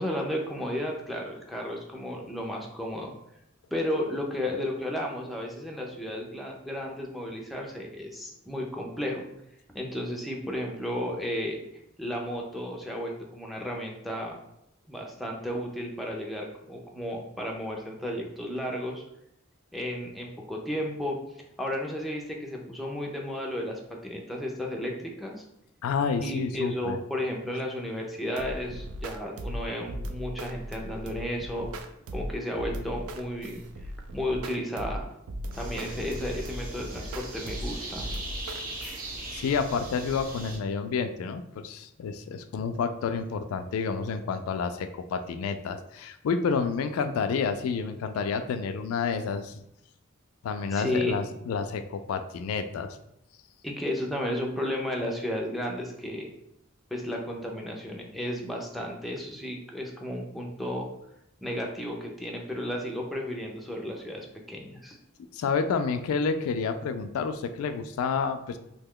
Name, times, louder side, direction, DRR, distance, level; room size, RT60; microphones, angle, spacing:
voice 1, 0.0-3.1 3.7-9.2 9.7-11.6 12.0-14.4 14.9-19.0 19.7-21.2 21.6-25.4 26.2-31.7 32.1-35.1 35.5-38.1 50.7-51.2 53.6-56.3 56.9-60.9 61.4-65.0, left 1 dB, ahead, -1 dB, 0.4 m, -33 dB
voice 2, 25.8-27.0 39.3-49.6 50.4-53.0 65.3-68.6, left 5 dB, 80° left, 11 dB, 0.3 m, -29 dB
sound 1, 28.4-39.0, equal, 85° right, 0.4 m, -38 dB
sound 2, 35.5-40.6, right 1 dB, 40° right, 0.6 m, -39 dB
2.8 x 2.2 x 3.6 m, 0.79 s
head